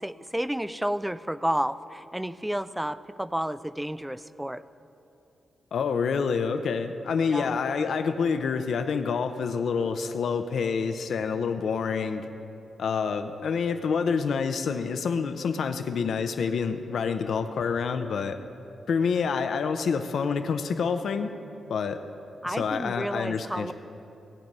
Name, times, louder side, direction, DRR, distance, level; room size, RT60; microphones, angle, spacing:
voice 1, 0.0-4.6 7.3-7.5 22.4-23.7, right 1 dB, 5° right, 15 dB, 0.3 m, -31 dB
voice 2, 5.7-12.3 12.8-18.4 18.9-21.3 21.7-22.0 22.4-23.7, left 5 dB, 70° left, 8 dB, 0.6 m, -27 dB
16.5 x 8.9 x 5.4 m, 2.8 s
wide cardioid pair, 120°, 0 cm